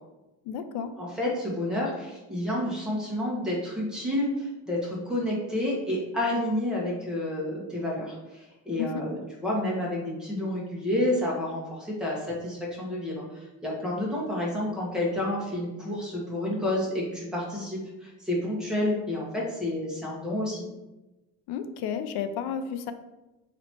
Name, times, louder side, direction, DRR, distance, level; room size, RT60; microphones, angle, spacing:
voice 1, 0.5-0.9 8.8-8.9 21.5-22.9, left 8 dB, 75° left, 10 dB, 0.5 m, -32 dB
voice 2, 1.0-20.7, left 1 dB, ahead, -5 dB, 1.2 m, -30 dB
3.0 x 2.9 x 4.3 m, 1.0 s
cardioid pair, 125°, 39 cm